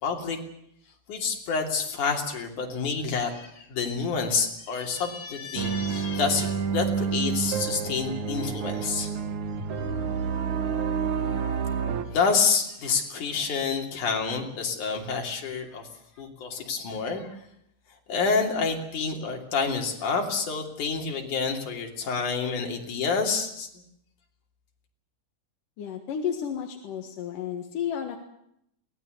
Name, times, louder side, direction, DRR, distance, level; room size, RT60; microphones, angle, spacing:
voice 1, 0.0-0.4 1.1-9.1 12.1-15.9 16.2-17.4 18.1-23.7, left 5 dB, 70° left, 2 dB, 4.5 m, -28 dB
sound 1, 5.6-12.0, right 6 dB, 70° right, 3.0 m, -29 dB
voice 2, 25.8-28.2, left 8 dB, 90° left, 3 dB, 3.3 m, -32 dB
23.0 x 18.5 x 8.0 m, 0.75 s
omnidirectional pair, 3.6 m